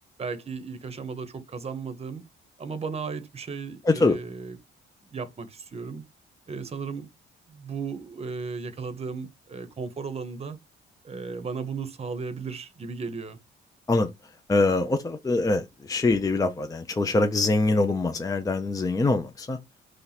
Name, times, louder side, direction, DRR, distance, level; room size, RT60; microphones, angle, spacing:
voice 1, 0.2-2.2 2.6-4.6 5.1-6.0 6.5-7.1 7.5-10.6 11.0-13.4, right 5 dB, 30° right, 0.8 m, -35 dB
voice 2, 3.9-4.2 13.9-14.1 14.5-19.6, left 2 dB, 15° left, 0.5 m, -24 dB
3.2 x 2.9 x 4.0 m
cardioid pair, 90°, 20 cm